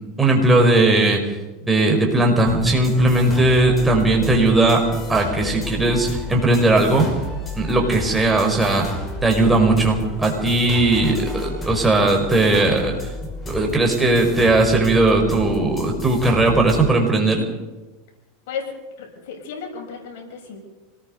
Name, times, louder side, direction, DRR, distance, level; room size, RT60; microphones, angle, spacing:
voice 1, 0.2-1.2 1.6-4.8 5.1-7.1 7.5-8.9 9.2-12.9 13.5-17.4, right 2 dB, 10° right, 1 dB, 5.3 m, -18 dB
sound 1, 2.5-16.9, left 1 dB, 20° left, 5.3 m, -32 dB
voice 2, 19.0-20.6, left 6 dB, 65° left, 1 dB, 6.9 m, -33 dB
26.0 x 20.0 x 5.3 m, 1.1 s
supercardioid pair, 125°, 0 cm